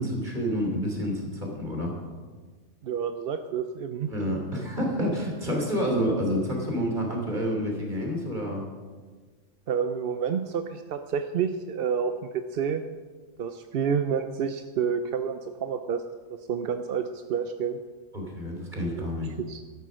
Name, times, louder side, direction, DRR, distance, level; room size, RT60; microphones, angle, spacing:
voice 1, 0.0-1.9 4.1-8.6 18.1-19.3, equal, 35° right, 0 dB, 3.3 m, -28 dB
voice 2, 2.8-4.1 9.7-12.8 13.4-16.0 16.3-17.8 18.9-19.1 19.4-19.6, right 7 dB, 55° right, 8 dB, 0.7 m, -29 dB
13.0 x 11.5 x 6.2 m, 1.4 s
omnidirectional pair, 1.4 m